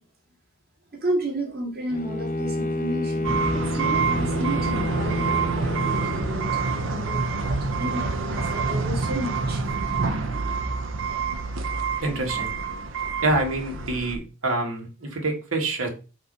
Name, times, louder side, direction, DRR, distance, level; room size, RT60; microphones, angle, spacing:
voice 1, 0.9-9.6, right 1 dB, 50° right, -1 dB, 2.2 m, -32 dB
Bowed string instrument, 1.9-6.7, left 1 dB, 40° left, 0.7 m, -29 dB
sound 1, 3.2-14.2, right 4 dB, 65° right, 0.8 m, -27 dB
voice 2, 12.0-12.5 13.2-15.9, right 2 dB, 90° right, 1 dB, 1.8 m, -26 dB
6.0 x 3.0 x 5.5 m, 0.33 s
head